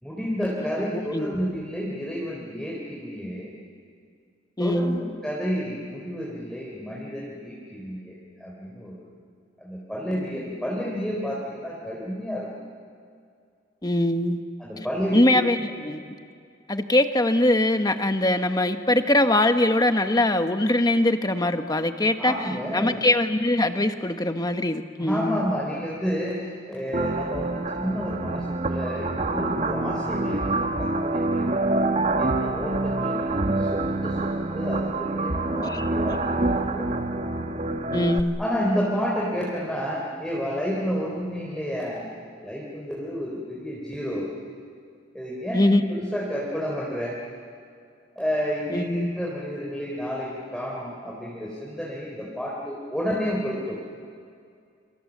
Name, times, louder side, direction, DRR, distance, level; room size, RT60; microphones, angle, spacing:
voice 1, 0.0-3.5 4.6-9.1 9.6-12.5 14.6-15.4 22.2-23.0 25.0-31.7 32.2-36.9 38.4-42.1 42.4-44.3 45.1-47.2 48.2-53.8, equal, 5° left, -5 dB, 3.7 m, -30 dB
voice 2, 0.9-1.3 4.6-5.0 13.8-14.4 15.1-16.0 16.7-22.3 22.7-25.5 35.6-35.8 37.9-38.4 45.5-45.8 48.7-49.2, left 1 dB, 20° left, 8 dB, 1.2 m, -22 dB
sound 1, 26.9-38.2, right 2 dB, 40° right, 1.2 m, -26 dB
29.0 x 26.0 x 7.4 m, 2.3 s
head